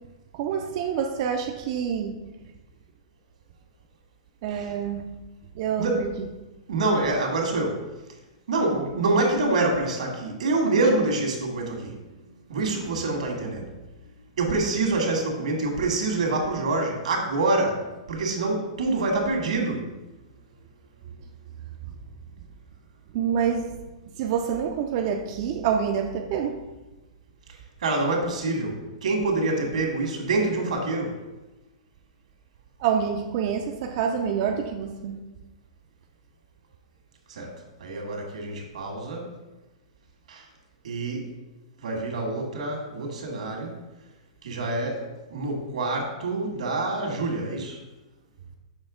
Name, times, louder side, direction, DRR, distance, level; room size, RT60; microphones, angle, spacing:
voice 1, 0.3-2.2 4.4-5.0 5.6-6.1 8.7-8.8 23.1-23.7 24.2-26.5 32.8-35.2, right 7 dB, 40° right, 3 dB, 0.4 m, -27 dB
voice 2, 6.7-7.8 8.5-12.0 12.5-13.7 14.4-17.8 18.1-19.9 27.8-31.1 37.3-37.5 37.8-39.3 40.3-40.4 40.8-41.3 41.8-43.7 44.4-47.8, right 2 dB, 85° right, 1 dB, 1.7 m, -26 dB
6.3 x 3.2 x 4.9 m, 1.1 s
supercardioid pair, 165°, 4 cm